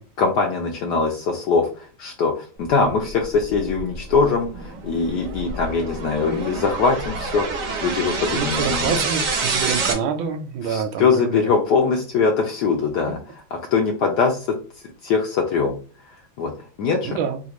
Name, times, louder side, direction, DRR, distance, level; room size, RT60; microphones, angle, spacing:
voice 1, 0.2-8.9 10.6-13.2 13.7-15.8 16.1-17.2, left 4 dB, 75° left, 2 dB, 1.0 m, -22 dB
sound 1, 3.0-9.9, right 4 dB, 60° right, 0.9 m, -27 dB
voice 2, 8.3-11.5 17.0-17.4, right 6 dB, 85° right, 6 dB, 1.4 m, -26 dB
3.4 x 2.4 x 2.9 m, 0.39 s
omnidirectional pair, 2.2 m